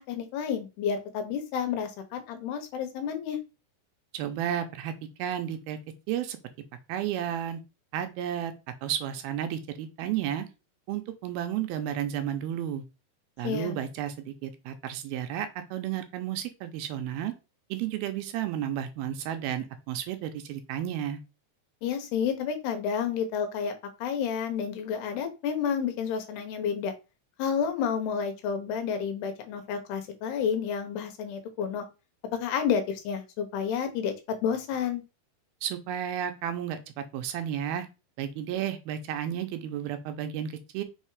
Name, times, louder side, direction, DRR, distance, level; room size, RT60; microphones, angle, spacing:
voice 1, 0.0-3.4 13.4-13.8 21.8-23.7 24.0-26.9 27.4-31.8 32.3-35.0, left 7 dB, 85° left, 7 dB, 3.2 m, -30 dB
voice 2, 4.1-5.8 6.1-6.4 6.9-7.6 7.9-8.5 8.8-10.5 10.9-12.8 13.4-17.3 17.7-21.2 35.6-37.9 38.2-40.8, right 10 dB, 80° right, 8 dB, 2.5 m, -32 dB
6.5 x 3.4 x 4.8 m, 0.28 s
omnidirectional pair, 4.5 m